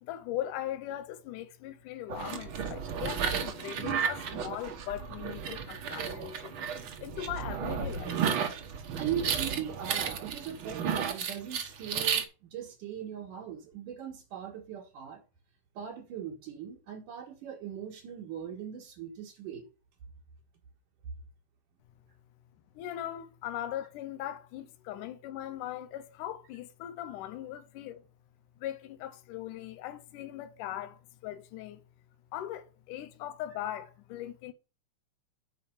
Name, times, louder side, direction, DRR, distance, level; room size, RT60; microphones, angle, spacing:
voice 1, 0.0-6.6 7.0-8.2 22.8-28.0 28.6-31.8 32.3-34.5, left 12 dB, 80° left, 2.4 m, -39 dB
sound 1, 2.1-12.2, right 7 dB, 60° right, 1.4 m, -33 dB
voice 2, 8.9-15.2 15.7-19.6, right 9 dB, 80° right, 3.1 m, -39 dB
9.6 x 4.3 x 7.1 m
omnidirectional pair, 3.6 m